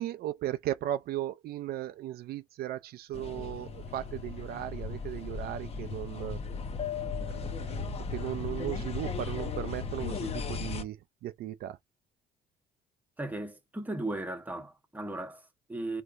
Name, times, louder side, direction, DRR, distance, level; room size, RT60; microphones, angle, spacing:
voice 1, 0.0-6.4 7.3-11.8, right 13 dB, 65° right, 0.4 m, -36 dB
sound 1, 3.1-10.8, left 5 dB, 35° left, 0.9 m, -36 dB
voice 2, 13.2-16.0, right 2 dB, 10° right, 1.1 m, -37 dB
4.5 x 3.2 x 2.5 m
cardioid pair, 110°, 17 cm